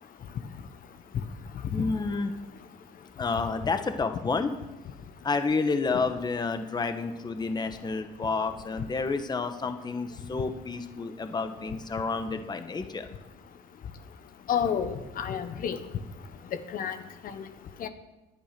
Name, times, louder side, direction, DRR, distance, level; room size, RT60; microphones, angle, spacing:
voice 1, 1.7-2.3 3.2-4.5 5.2-13.1, left 4 dB, 25° left, 8 dB, 1.2 m, -30 dB
voice 2, 14.5-15.8 16.7-16.9 17.2-17.3 17.8-17.9, left 8 dB, 55° left, 9 dB, 1.2 m, -29 dB
19.0 x 10.5 x 6.1 m, 1.1 s
cardioid pair, 110°, 17 cm